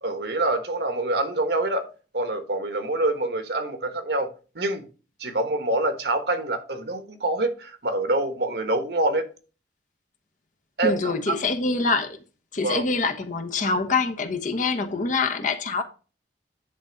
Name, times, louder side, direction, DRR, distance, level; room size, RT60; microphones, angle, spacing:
voice 1, 0.0-1.8 2.1-4.8 5.2-9.3 10.8-11.4 12.6-12.9, right 2 dB, 65° right, 1.3 m, -26 dB
voice 2, 10.8-12.2 12.5-15.8, left 4 dB, 45° left, 1.1 m, -25 dB
10.0 x 3.8 x 5.2 m
head